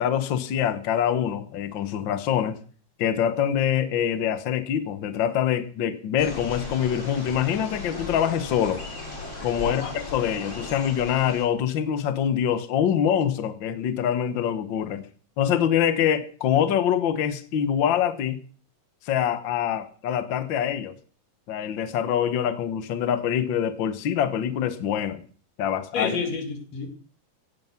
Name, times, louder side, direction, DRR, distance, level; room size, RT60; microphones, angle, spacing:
voice 1, 0.0-2.6 3.0-8.8 9.4-15.0 15.4-18.4 19.0-20.9 21.5-25.2 25.6-26.1, left 9 dB, 80° left, 1.0 m, -25 dB
Camino a Futaleufú (riachuelo), 6.2-11.4, left 2 dB, 20° left, 4.6 m, -37 dB
voice 2, 25.9-26.9, left 5 dB, 55° left, 3.4 m, -29 dB
17.0 x 9.3 x 5.8 m
omnidirectional pair, 3.8 m